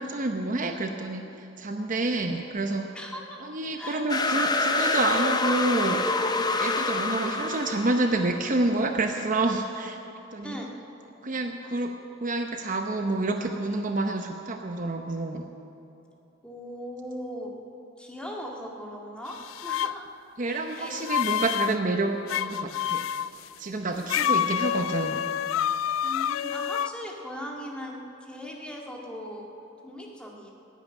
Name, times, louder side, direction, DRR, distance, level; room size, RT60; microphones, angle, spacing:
voice 1, 0.0-2.9 3.4-6.1 6.6-10.0 10.3-10.6 11.2-11.9 12.2-15.5 20.4-23.1 23.6-25.2, right 2 dB, 40° right, 4 dB, 0.8 m, -28 dB
voice 2, 3.0-3.4 3.8-4.1 10.4-10.7 16.4-17.5 18.0-20.1 20.4-20.9 24.0-24.4 26.0-29.5 29.8-30.5, equal, 5° left, -1 dB, 1.9 m, -39 dB
sound 1, 4.1-8.5, left 3 dB, 20° left, 0.7 m, -26 dB
sound 2, 19.3-20.0 20.8-21.8 22.3-23.3 24.1-26.9, left 9 dB, 75° left, 0.3 m, -28 dB
15.5 x 9.2 x 9.7 m, 2.9 s
head